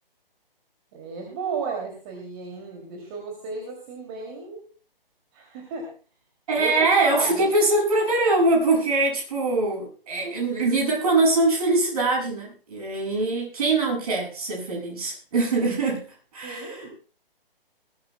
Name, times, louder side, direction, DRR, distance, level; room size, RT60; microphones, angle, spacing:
voice 1, 0.9-4.6 5.3-5.9 6.6-7.5 16.4-16.9, right 4 dB, 25° right, 1 dB, 2.8 m, -33 dB
voice 2, 6.5-16.1 16.3-16.9, right 2 dB, 40° right, -1 dB, 7.1 m, -23 dB
20.5 x 16.5 x 2.3 m, 0.38 s
figure-of-eight pair, 135°, 29 cm